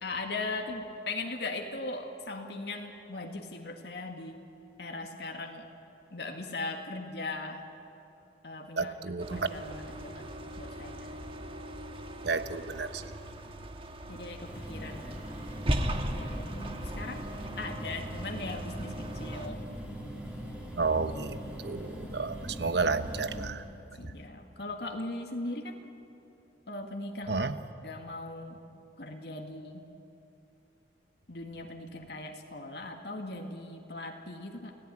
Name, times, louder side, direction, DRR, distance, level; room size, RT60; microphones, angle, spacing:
voice 1, 0.0-4.4 4.8-5.7 6.1-7.6 8.4-9.0 9.3-10.3 10.6-11.2 14.1-15.3 16.1-17.3 17.6-19.7 24.0-25.9 26.7-27.5 27.8-28.6 29.0-29.9 31.3-34.8, left 2 dB, 65° left, 3 dB, 2.0 m, -39 dB
voice 2, 8.8-9.4 12.2-13.0 20.8-23.6 27.3-27.5, right 4 dB, 70° right, 11 dB, 1.1 m, -31 dB
sound 1, 9.2-19.5, equal, 30° right, 1.5 m, -38 dB
sound 2, 14.4-23.5, equal, 5° right, 3.2 m, -41 dB
28.5 x 17.0 x 9.9 m, 2.8 s
head